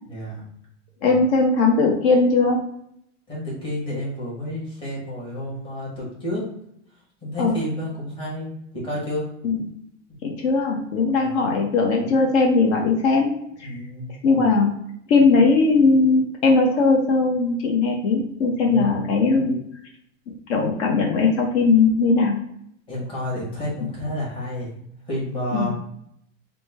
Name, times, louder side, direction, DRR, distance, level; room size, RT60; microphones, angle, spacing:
voice 1, 0.1-0.5 3.3-6.4 7.2-9.2 11.2-11.5 13.6-14.1 18.7-19.0 22.9-24.8 25.1-25.7, left 1 dB, 15° left, -5 dB, 1.0 m, -30 dB
voice 2, 1.0-2.6 7.4-7.6 9.4-9.6 10.2-13.3 13.6-13.7 14.2-14.7 15.1-19.6 20.5-22.3 25.5-25.7, left 3 dB, 60° left, 0 dB, 0.7 m, -19 dB
3.1 x 2.1 x 3.2 m, 0.72 s
supercardioid pair, 150°, 38 cm